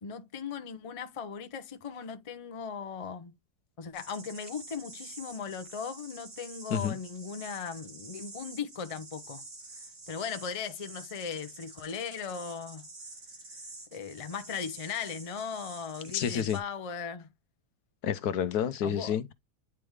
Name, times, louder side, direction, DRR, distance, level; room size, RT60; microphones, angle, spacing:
voice 1, 0.0-3.3 3.8-9.4 10.1-12.9 13.9-17.3 18.8-19.2, left 6 dB, 35° left, 0.6 m, -38 dB
sound 1, 3.9-16.6, right 3 dB, 80° right, 3.6 m, -48 dB
voice 2, 16.1-16.6 18.0-19.3, left 8 dB, 75° left, 1.2 m, -29 dB
9.6 x 3.5 x 3.2 m
omnidirectional pair, 1.7 m